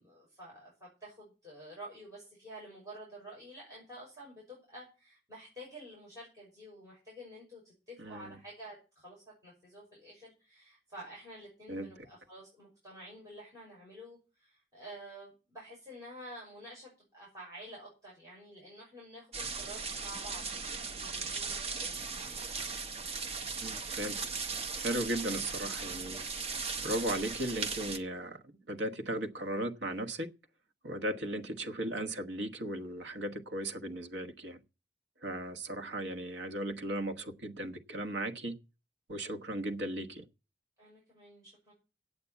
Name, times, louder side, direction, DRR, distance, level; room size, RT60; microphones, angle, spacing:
voice 1, 0.0-20.4 20.8-22.4 40.8-41.7, right 1 dB, 20° right, 6.1 m, -50 dB
sound 1, 19.3-28.0, right 4 dB, 35° right, 0.9 m, -38 dB
voice 2, 23.6-24.2 24.8-26.3 26.8-28.4 28.7-30.3 30.8-34.6 35.2-38.5 39.1-40.2, right 1 dB, 85° right, 1.3 m, -36 dB
8.6 x 8.3 x 8.1 m
head